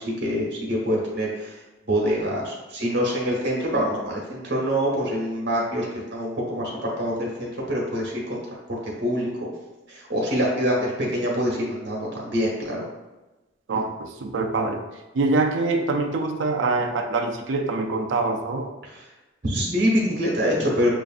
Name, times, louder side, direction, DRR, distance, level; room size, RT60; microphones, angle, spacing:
voice 1, 0.0-1.6 1.9-8.4 8.7-9.5 9.9-12.8 13.7-13.9 18.9-19.0 19.4-20.9, equal, 65° right, -3 dB, 1.0 m, -25 dB
voice 2, 13.7-14.8 15.1-18.7, right 3 dB, 85° right, 4 dB, 0.4 m, -24 dB
6.3 x 2.5 x 2.4 m, 1.1 s
head